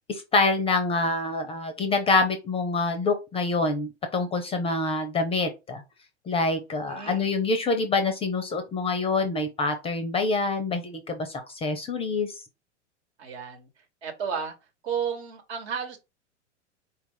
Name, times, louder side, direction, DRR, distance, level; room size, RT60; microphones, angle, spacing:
voice 1, 0.1-5.8 6.3-12.4, left 3 dB, 15° left, 0.5 m, -26 dB
voice 2, 6.9-7.3 13.2-13.7 14.0-14.5 14.8-16.0, right 7 dB, 60° right, 1.2 m, -32 dB
4.1 x 2.4 x 3.8 m
figure-of-eight pair, 90°, 36 cm